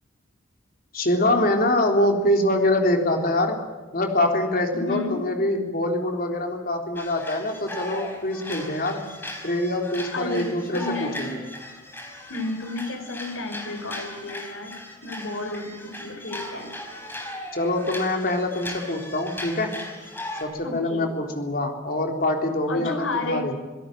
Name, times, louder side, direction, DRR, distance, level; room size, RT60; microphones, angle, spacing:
voice 1, 0.9-3.6 3.9-9.0 9.4-11.4 17.5-19.7 20.4-23.6, left 1 dB, 45° left, 3 dB, 3.7 m, -24 dB
voice 2, 4.7-5.2 10.1-11.2 12.3-16.8 20.6-21.1 22.7-23.5, left 3 dB, 80° left, 6 dB, 4.7 m, -32 dB
sound 1, 7.0-20.4, left 1 dB, 10° left, 4.2 m, -38 dB
27.0 x 17.5 x 9.2 m, 1.3 s
head